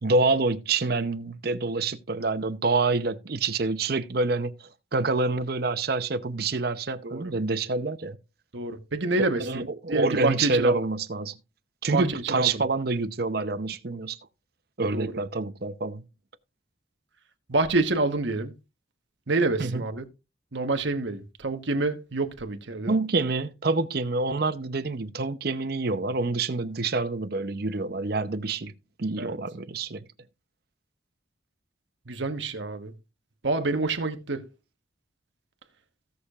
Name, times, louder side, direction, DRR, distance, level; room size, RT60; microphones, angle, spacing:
voice 1, 0.0-8.2 9.4-11.3 11.8-14.2 14.8-16.0 19.6-19.8 22.9-28.7 29.0-30.0, right 3 dB, 50° right, 0.7 m, -27 dB
voice 2, 8.5-10.8 11.9-12.6 14.9-15.1 17.5-18.5 19.3-20.0 20.5-23.0 29.2-29.3 32.1-32.9 33.4-34.5, right 2 dB, 70° right, 1.2 m, -27 dB
17.0 x 6.5 x 2.4 m
head